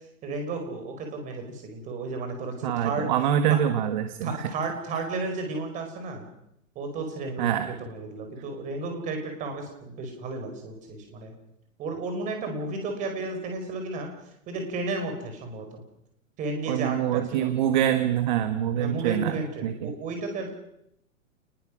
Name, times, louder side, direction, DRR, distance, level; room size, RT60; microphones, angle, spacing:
voice 1, 0.2-3.1 3.5-3.6 4.2-6.3 6.7-7.5 7.8-11.3 11.8-14.1 14.5-15.8 16.4-17.5 18.8-20.5, right 3 dB, 20° right, 4 dB, 4.9 m, -33 dB
voice 2, 2.6-4.5 7.4-7.7 16.7-19.9, right 10 dB, 35° right, 9 dB, 1.6 m, -25 dB
28.5 x 20.5 x 6.3 m, 0.77 s
hypercardioid pair, 165°, 41 cm